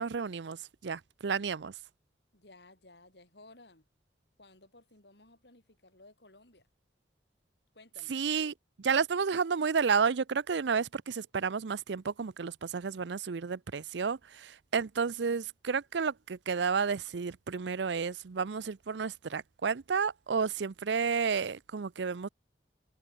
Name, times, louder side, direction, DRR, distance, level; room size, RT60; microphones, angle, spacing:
voice 1, 0.0-1.7 8.1-22.3, right 5 dB, 85° right, 0.6 m, -31 dB
voice 2, 2.3-3.9 4.4-6.7 7.7-8.2, left 2 dB, 70° left, 7.6 m, -57 dB
head